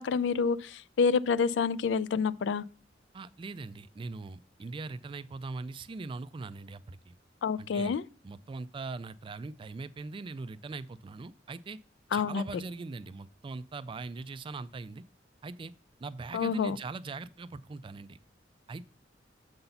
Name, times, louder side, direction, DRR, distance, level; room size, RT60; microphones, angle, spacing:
voice 1, 0.0-2.6 7.4-8.0 12.1-12.6 16.3-16.8, left 5 dB, 70° left, 0.3 m, -28 dB
voice 2, 3.1-7.1 7.6-7.9 8.2-11.8 12.1-15.0 15.4-15.7 16.0-18.2 18.7-18.9, right 3 dB, 30° right, 0.3 m, -41 dB
6.7 x 4.0 x 5.5 m
head